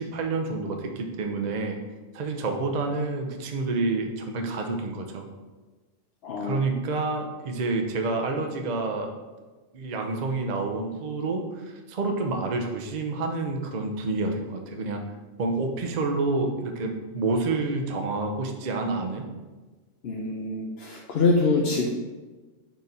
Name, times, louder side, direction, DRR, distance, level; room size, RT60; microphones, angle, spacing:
voice 1, 0.0-1.8 2.1-5.3 6.4-9.1 9.7-15.0 15.4-19.3, right 3 dB, 45° right, 3 dB, 0.6 m, -28 dB
voice 2, 6.2-6.6 20.0-21.9, left 3 dB, 60° left, -1 dB, 0.8 m, -25 dB
5.1 x 4.5 x 4.0 m, 1.2 s
omnidirectional pair, 1.3 m